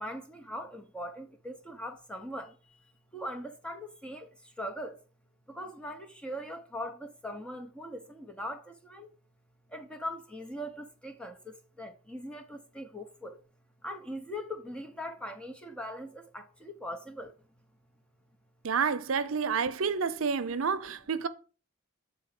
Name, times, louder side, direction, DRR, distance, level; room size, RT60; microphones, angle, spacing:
voice 1, 0.0-2.8 3.1-5.0 5.5-9.1 9.7-13.4 13.8-17.3, equal, 5° left, 0.9 m, -41 dB
voice 2, 18.6-21.3, right 5 dB, 80° right, 0.6 m, -29 dB
7.8 x 3.9 x 5.9 m
head